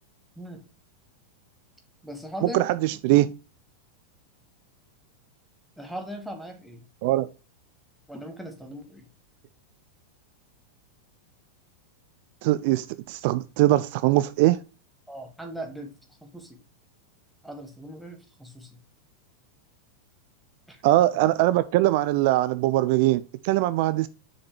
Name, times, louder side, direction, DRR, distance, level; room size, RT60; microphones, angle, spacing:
voice 1, 2.0-2.6 5.8-6.8 8.1-9.1 15.1-15.9 16.2-16.6 17.4-18.8 20.7-20.8, equal, ahead, 1.5 m, -39 dB
voice 2, 2.5-3.3 7.0-7.3 12.4-14.6 20.8-24.1, right 16 dB, 50° right, 0.3 m, -22 dB
6.9 x 4.9 x 3.0 m
figure-of-eight pair, 90°, 0 cm